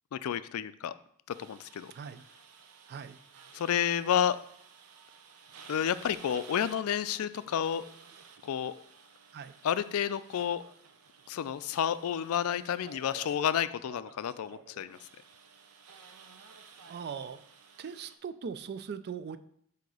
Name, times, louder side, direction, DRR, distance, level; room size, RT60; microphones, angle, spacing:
voice 1, 0.1-0.9 1.3-1.9 3.5-4.4 5.7-7.8 8.4-8.7 9.6-10.6 11.3-15.0, left 9 dB, 70° left, 14 dB, 0.3 m, -30 dB
sound 1, 1.3-18.2, right 5 dB, 90° right, 0.7 m, -54 dB
voice 2, 16.9-17.4 17.8-19.4, right 6 dB, 45° right, 13 dB, 0.3 m, -40 dB
7.8 x 2.8 x 4.8 m, 0.68 s
head